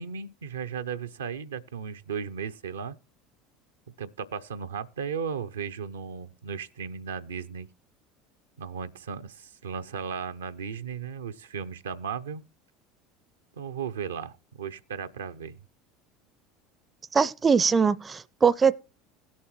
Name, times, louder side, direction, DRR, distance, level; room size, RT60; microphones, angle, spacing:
voice 1, 0.0-3.0 4.0-7.7 8.6-12.4 13.6-15.5, right 6 dB, 80° right, 0.4 m, -35 dB
voice 2, 17.1-18.8, right 5 dB, 25° right, 0.4 m, -22 dB
17.0 x 7.3 x 3.1 m
hypercardioid pair, 75°, 0 cm